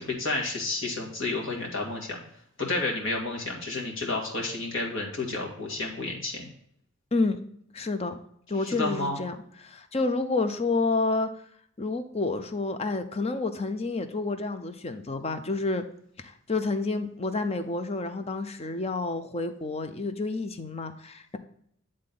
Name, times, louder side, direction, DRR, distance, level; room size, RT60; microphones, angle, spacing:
voice 1, 0.0-2.2 2.6-6.5 8.6-9.2, left 2 dB, 60° left, -1 dB, 2.0 m, -31 dB
voice 2, 7.7-8.2 8.5-11.3 11.8-15.8 16.2-21.4, left 3 dB, 30° left, 9 dB, 0.6 m, -29 dB
10.0 x 3.8 x 3.8 m, 0.69 s
head